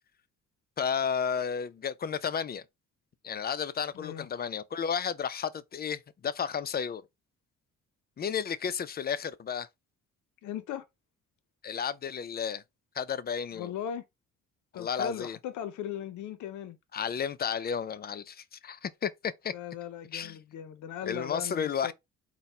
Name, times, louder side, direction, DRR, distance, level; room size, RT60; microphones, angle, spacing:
voice 1, 0.8-2.6 3.2-7.0 8.2-9.7 11.6-12.6 12.9-13.7 14.7-15.4 16.9-19.5 20.1-20.4 21.1-21.9, left 7 dB, 30° left, 0.4 m, -32 dB
voice 2, 3.9-4.3 10.4-10.9 13.5-14.0 14.7-16.8 19.5-21.9, left 9 dB, 75° left, 0.6 m, -38 dB
4.0 x 2.1 x 4.1 m
cardioid pair, 90°, 30 cm